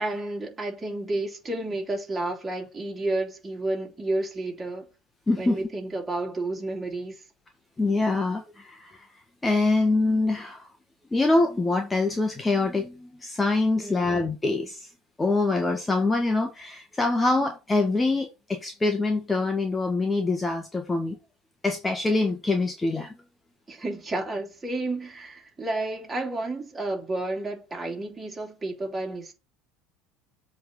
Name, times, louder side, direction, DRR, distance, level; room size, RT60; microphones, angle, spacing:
voice 1, 0.0-4.9 5.4-7.2 13.8-14.1 23.7-29.3, right 2 dB, 20° right, 3.2 m, -31 dB
voice 2, 5.3-5.6 7.8-9.1 9.4-10.7 11.1-14.9 15.2-21.2 21.6-23.1, left 3 dB, 15° left, 1.2 m, -25 dB
7.7 x 3.5 x 6.2 m
figure-of-eight pair, 70°, 0 cm